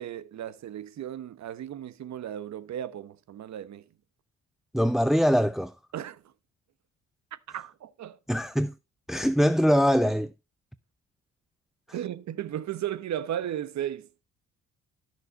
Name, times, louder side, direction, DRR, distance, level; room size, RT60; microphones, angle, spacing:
voice 1, 0.0-3.8 5.9-6.2 7.5-8.2 11.9-14.1, right 11 dB, 65° right, 1.1 m, -35 dB
voice 2, 4.7-5.7 8.3-8.7 9.1-10.3, equal, ahead, 0.5 m, -22 dB
13.5 x 6.5 x 4.1 m
cardioid pair, 90°, 30 cm